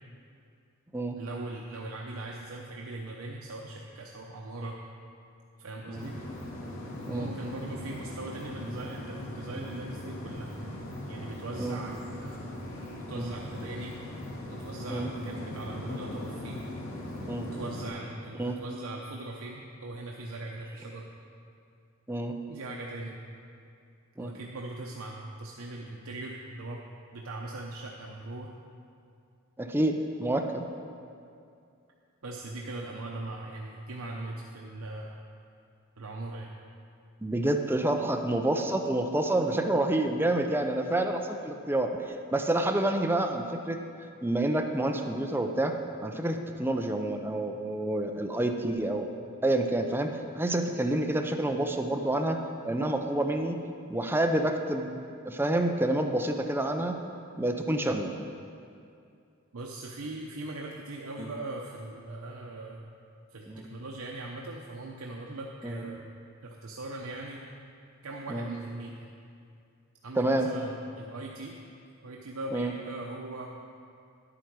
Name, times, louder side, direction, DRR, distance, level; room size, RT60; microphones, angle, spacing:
voice 1, 1.2-4.8 5.6-6.2 7.1-10.5 11.1-12.5 13.1-14.1 14.5-16.6 17.5-21.1 22.5-23.2 24.2-26.8 27.1-28.5 32.2-35.2 36.0-36.5 59.5-62.8 63.3-66.1 66.4-67.4 68.0-69.1 70.0-71.6 72.0-73.5, right 2 dB, 90° right, -1 dB, 0.8 m, -40 dB
sound 1, 5.9-17.9, left 1 dB, 90° left, 2.6 m, -40 dB
voice 2, 29.6-30.7 37.2-43.8 44.2-45.7 46.0-49.1 49.4-52.4 52.6-53.6 53.9-55.0 55.3-56.9 57.4-58.1 61.2-61.3 63.5-63.7 65.6-65.8 68.3-68.5 70.2-70.5 72.5-72.7, right 1 dB, 10° right, 4 dB, 0.5 m, -28 dB
11.0 x 8.8 x 4.6 m, 2.5 s
head